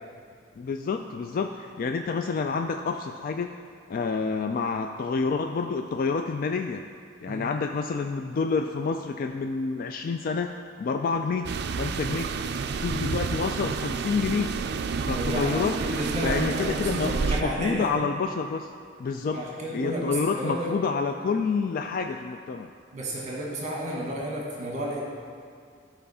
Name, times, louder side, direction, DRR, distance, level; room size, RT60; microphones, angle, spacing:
voice 1, 0.6-3.5 3.9-6.8 7.2-10.5 10.8-12.3 12.7-14.5 15.1-15.7 16.2-18.7 19.0-19.4 19.7-22.7, left 5 dB, 50° left, 5 dB, 0.3 m, -28 dB
sound 1, 11.4-17.4, right 4 dB, 60° right, 0.4 m, -29 dB
voice 2, 15.0-17.9 19.3-20.8 22.9-25.0, right 1 dB, 40° right, -3 dB, 1.4 m, -32 dB
12.5 x 4.5 x 5.5 m, 2.2 s
head